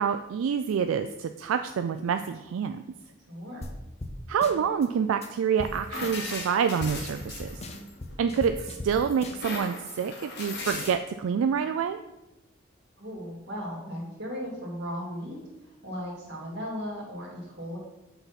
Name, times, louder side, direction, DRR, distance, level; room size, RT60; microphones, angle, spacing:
voice 1, 0.0-2.8 4.3-7.6 8.2-12.0, right 7 dB, 80° right, 8 dB, 0.3 m, -27 dB
voice 2, 3.3-3.6 13.0-15.4 15.8-17.8, equal, 55° right, -3 dB, 2.1 m, -36 dB
sound 1, 3.6-3.7 4.0-4.1 4.4-4.9 5.2-5.3 5.6-5.7 6.0-6.5 6.8-8.9 9.2-9.7, left 2 dB, 30° left, 0.5 m, -39 dB
sound 2, 5.6-8.1 8.6-10.9, left 3 dB, 50° left, 1.3 m, -38 dB
5.7 x 4.0 x 5.8 m, 0.98 s
head